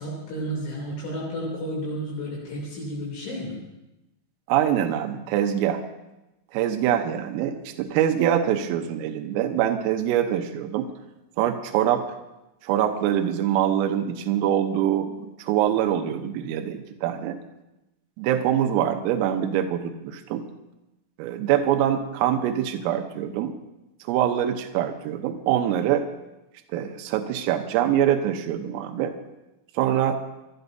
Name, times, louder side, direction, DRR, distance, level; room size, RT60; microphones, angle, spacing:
voice 1, 0.0-3.6, equal, 65° left, -5 dB, 5.3 m, -32 dB
voice 2, 4.5-5.8 6.5-10.9 11.4-12.0 12.6-17.4 18.2-20.4 21.2-23.5 24.0-26.0 26.7-29.1 29.8-30.2, right 10 dB, 85° right, 5 dB, 3.5 m, -24 dB
27.0 x 13.0 x 2.7 m, 0.96 s
omnidirectional pair, 5.9 m